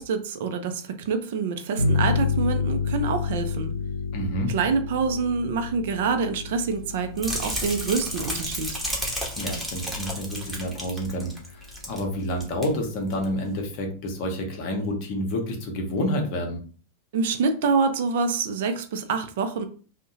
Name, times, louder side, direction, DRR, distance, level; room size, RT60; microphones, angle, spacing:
voice 1, 0.0-3.7 4.5-8.7 17.1-19.7, right 5 dB, 55° right, 8 dB, 0.4 m, -26 dB
sound 1, 1.8-11.1, left 5 dB, 90° left, 0.3 m, -30 dB
voice 2, 4.1-4.5 9.4-16.6, equal, 45° left, 3 dB, 0.7 m, -29 dB
sound 2, 7.2-12.0 12.3-12.6 13.1-13.2, equal, ahead, 0.8 m, -32 dB
2.6 x 2.1 x 2.6 m, 0.40 s
figure-of-eight pair, 90°, 0 cm